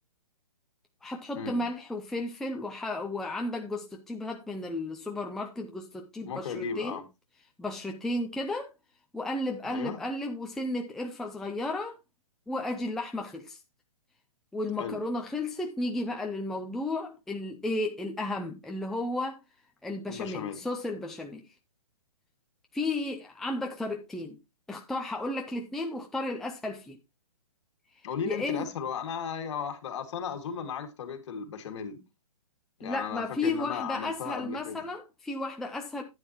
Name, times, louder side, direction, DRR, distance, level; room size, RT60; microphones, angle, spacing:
voice 1, 1.0-7.0 7.6-8.7 9.1-12.0 12.5-13.6 14.5-19.4 19.8-21.4 22.7-24.4 24.7-27.0 28.3-28.7 32.8-36.0, left 2 dB, ahead, 0.5 m, -33 dB
voice 2, 6.3-7.1 9.6-10.0 14.8-15.0 20.1-20.6 28.0-32.0 32.8-34.9, left 7 dB, 50° left, 2.1 m, -35 dB
10.5 x 9.2 x 2.9 m
hypercardioid pair, 145°, 19 cm